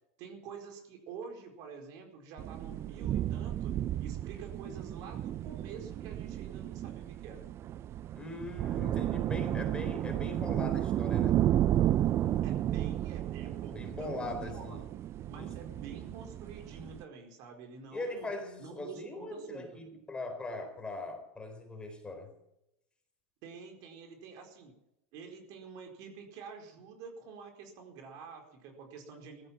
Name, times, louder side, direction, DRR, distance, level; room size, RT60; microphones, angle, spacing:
voice 1, 0.2-3.7 4.0-7.5 12.4-14.9 15.3-18.3 18.6-19.8 23.4-24.7 25.1-29.5, right 5 dB, 55° right, 4 dB, 4.4 m, -48 dB
sound 1, 2.4-17.0, right 12 dB, 35° right, 0.5 m, -33 dB
voice 2, 8.1-11.4 13.7-14.8 15.4-15.5 17.9-22.3, left 2 dB, 15° left, 4 dB, 3.9 m, -41 dB
16.0 x 13.5 x 6.0 m, 0.84 s
hypercardioid pair, 115°, 8 cm